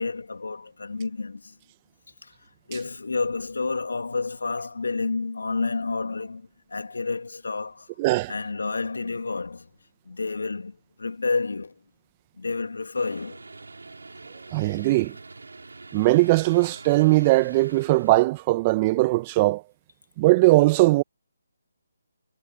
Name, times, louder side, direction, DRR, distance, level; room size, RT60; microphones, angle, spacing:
voice 1, 0.0-1.5 2.2-2.3 2.7-7.9 8.3-9.7 10.0-11.7 12.4-13.4, left 4 dB, 75° left, 2.7 m, -30 dB
voice 2, 8.0-8.3 14.5-15.2 15.9-19.6 20.2-21.0, right 20 dB, 25° right, 1.4 m, -20 dB
sound 1, 13.0-18.2, right 3 dB, 80° right, 6.9 m, -45 dB
figure-of-eight pair, 150°, 0 cm